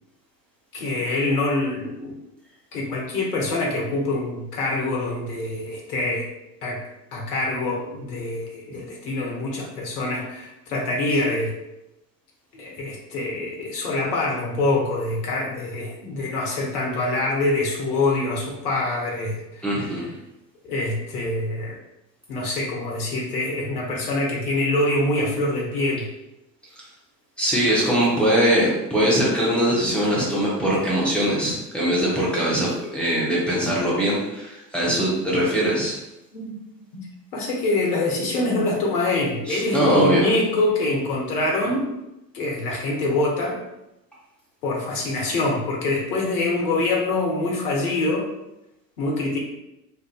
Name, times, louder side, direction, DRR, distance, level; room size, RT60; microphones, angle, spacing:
voice 1, 0.7-2.2 2.7-6.3 6.6-6.8 7.1-11.6 12.5-19.7 20.6-21.8 22.3-26.1 36.3-36.6 36.9-37.1 37.3-41.9 42.3-43.6 44.6-48.3 49.0-49.4, left 2 dB, 65° left, -2 dB, 1.0 m, -25 dB
voice 2, 19.6-20.1 27.4-35.9 39.5-40.3, equal, ahead, -7 dB, 0.6 m, -21 dB
2.7 x 2.4 x 2.2 m, 0.90 s
figure-of-eight pair, 80°, 49 cm